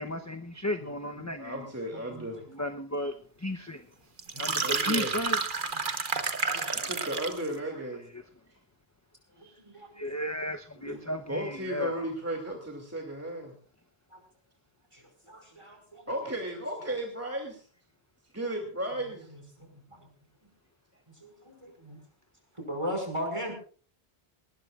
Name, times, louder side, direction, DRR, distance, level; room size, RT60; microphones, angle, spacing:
voice 1, 0.0-1.6 2.6-3.1 3.4-3.8 4.4-5.4 10.0-11.9, left 1 dB, 20° left, 5 dB, 0.8 m, -34 dB
voice 2, 1.4-2.4 4.6-5.2 6.7-8.1 10.8-11.0 11.3-13.5 16.1-17.6 18.3-19.3, right 1 dB, 15° right, 1 dB, 2.6 m, -35 dB
sound 1, 4.2-7.5, right 4 dB, 50° right, 1.4 m, -30 dB
voice 3, 4.3-4.9 6.5-6.9 9.4-10.0 14.1-14.2 14.9-16.0 19.6-20.0 21.2-22.0 22.7-23.5, equal, 30° right, 3 dB, 5.6 m, -38 dB
20.0 x 19.5 x 2.5 m, 0.41 s
omnidirectional pair, 1.1 m